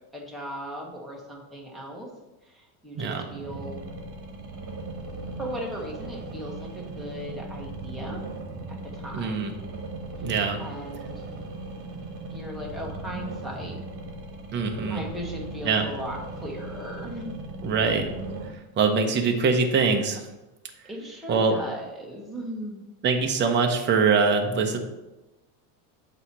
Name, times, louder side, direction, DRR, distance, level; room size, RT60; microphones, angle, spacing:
voice 1, 0.1-2.1 2.4-3.8 5.4-8.2 8.7-9.5 10.2-10.3 10.6-11.2 12.2-13.8 14.8-17.4 20.8-22.8, equal, ahead, -3 dB, 1.1 m, -37 dB
sound 1, 3.3-18.5, right 2 dB, 40° right, 1.4 m, -38 dB
voice 2, 9.1-9.5 10.2-10.6 14.5-15.0 15.7-15.8 17.6-18.1 18.8-20.3 21.3-21.6 23.0-24.8, right 5 dB, 25° right, 3 dB, 0.7 m, -23 dB
7.7 x 3.0 x 6.0 m, 1.0 s
cardioid pair, 150°, 46 cm